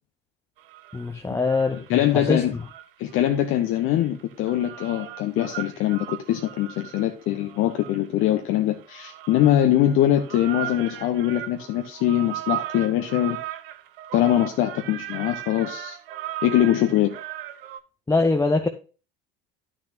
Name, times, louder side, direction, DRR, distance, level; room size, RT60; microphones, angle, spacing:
sound 1, 0.6-2.1 2.5-17.8, right 13 dB, 65° right, 0.8 m, -37 dB
voice 1, 0.9-2.4 18.1-18.7, left 3 dB, 10° left, 0.7 m, -23 dB
voice 2, 1.7-2.5 3.0-13.4 14.1-16.0 16.4-17.1, left 12 dB, 45° left, 0.8 m, -23 dB
11.5 x 6.2 x 2.8 m
figure-of-eight pair, 65°, 30 cm